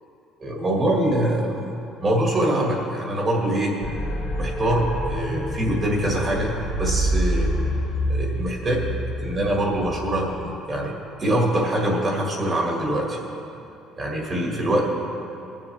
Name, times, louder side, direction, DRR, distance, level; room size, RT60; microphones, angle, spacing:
voice 1, 0.4-1.6 2.0-3.7 4.4-6.5 6.8-7.5 8.1-10.9 11.2-13.2 14.0-14.8, right 1 dB, 30° right, -1 dB, 1.8 m, -24 dB
sound 1, 3.8-10.5, equal, 35° left, 1.2 m, -27 dB
20.5 x 7.2 x 3.4 m, 2.9 s
cardioid pair, 140°, 0 cm